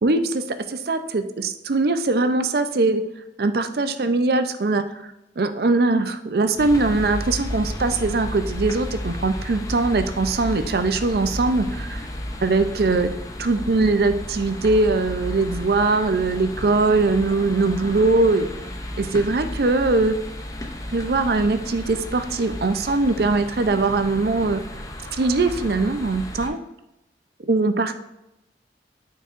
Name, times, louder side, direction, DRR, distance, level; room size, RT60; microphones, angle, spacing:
voice 1, 0.0-3.0 3.4-12.0 12.4-13.1 13.4-18.5 19.0-20.2 20.9-24.6 25.2-26.6 27.5-27.9, right 3 dB, 55° right, 9 dB, 0.5 m, -21 dB
sound 1, 6.6-26.5, left 1 dB, 20° left, 0.5 m, -33 dB
9.0 x 4.6 x 2.5 m, 0.88 s
head